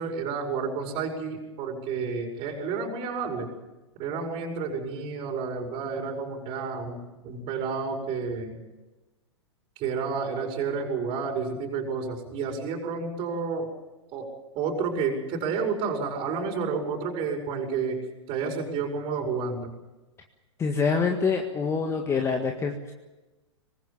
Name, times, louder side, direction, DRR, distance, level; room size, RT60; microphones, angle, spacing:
voice 1, 0.0-3.5 4.0-8.6 9.8-13.7 14.1-14.2 14.6-18.0 18.3-19.7, right 5 dB, 35° right, 1 dB, 5.4 m, -30 dB
voice 2, 20.6-22.9, left 5 dB, 20° left, 4 dB, 1.8 m, -26 dB
25.0 x 20.0 x 7.4 m, 1.1 s
figure-of-eight pair, 105°, 15 cm